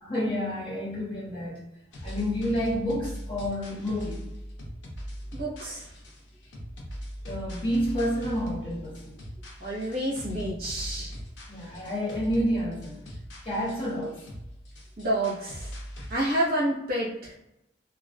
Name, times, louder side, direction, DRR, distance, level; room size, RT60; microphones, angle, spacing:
voice 1, 0.0-1.6 2.0-4.3 7.2-9.1 11.5-13.0 13.4-14.2, equal, 30° left, 0.8 m, -29 dB
sound 1, 1.9-16.1, equal, 85° left, 0.6 m, -41 dB
voice 2, 5.3-5.9 9.6-11.2 11.6-11.7 15.0-15.7 16.1-17.3, right 1 dB, 55° right, 0.8 m, -29 dB
2.3 x 2.3 x 2.3 m
head